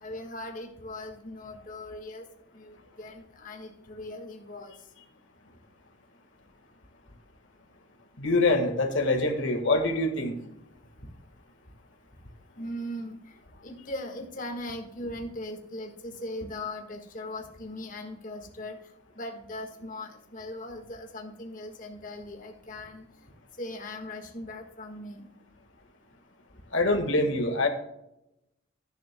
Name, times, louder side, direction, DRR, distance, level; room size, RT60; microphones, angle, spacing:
voice 1, 0.0-2.2 2.5-4.7 12.6-13.2 13.6-18.8 19.1-23.0 23.6-25.3, left 1 dB, 40° left, 3 dB, 1.5 m, -39 dB
voice 2, 8.2-10.4 26.7-27.7, left 2 dB, 60° left, 5 dB, 1.6 m, -25 dB
12.0 x 10.5 x 2.2 m, 0.86 s
head